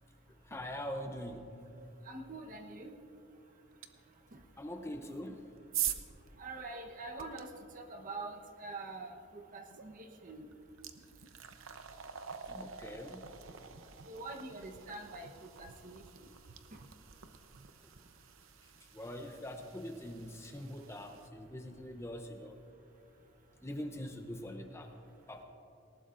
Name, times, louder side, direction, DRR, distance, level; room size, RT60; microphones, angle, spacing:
voice 1, 0.4-1.6 4.6-5.5 12.4-13.3 18.6-22.6 23.6-24.9 25.3-25.4, left 1 dB, 15° left, 5 dB, 0.6 m, -43 dB
voice 2, 2.1-2.9 6.4-7.5 7.7-10.4 14.1-15.3 15.6-16.0, right 3 dB, 40° right, 3 dB, 1.0 m, -45 dB
sound 1, 3.8-3.9 5.0-7.4 9.7-9.9 10.3-21.3, right 10 dB, 75° right, 0.8 m, -45 dB
19.0 x 18.5 x 2.6 m, 2.7 s
head